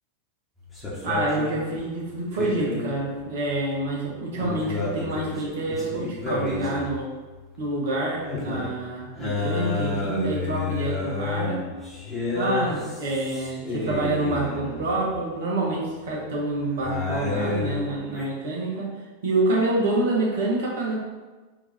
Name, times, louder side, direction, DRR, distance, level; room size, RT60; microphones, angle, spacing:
sound 1, 0.6-15.2 16.2-18.3, left 3 dB, 5° left, 1.3 m, -31 dB
voice 1, 1.0-7.1 7.6-11.6 12.3-18.9 19.2-21.0, right 2 dB, 55° right, -3 dB, 1.2 m, -27 dB
4.3 x 2.8 x 4.2 m, 1.3 s
figure-of-eight pair, 90°, 0 cm